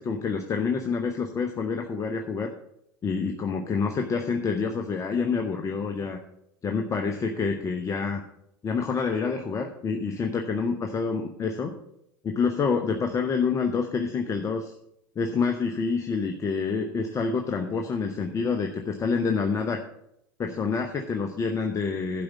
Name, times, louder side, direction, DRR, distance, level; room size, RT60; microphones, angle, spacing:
voice 1, 0.0-2.5 3.0-6.2 6.6-8.2 8.6-11.7 12.2-14.7 15.2-19.8 20.4-22.2, left 5 dB, 25° left, 3 dB, 1.0 m, -27 dB
12.0 x 5.1 x 7.2 m, 0.77 s
figure-of-eight pair, 80°, 12 cm